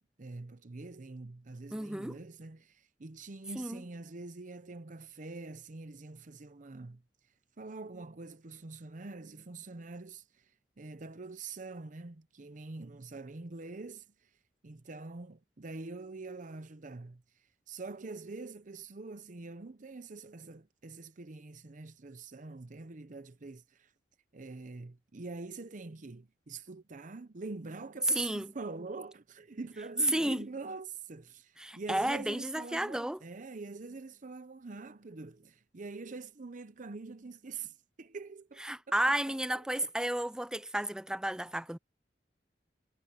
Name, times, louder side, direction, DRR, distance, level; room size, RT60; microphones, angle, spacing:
voice 1, 0.2-7.0 7.6-14.3 14.6-17.2 17.7-23.9 24.3-39.9, right 3 dB, 45° right, 0.7 m, -45 dB
voice 2, 1.7-2.2 3.6-3.8 28.2-28.5 30.1-30.4 31.6-33.2 38.6-41.8, right 1 dB, 5° right, 0.4 m, -32 dB
head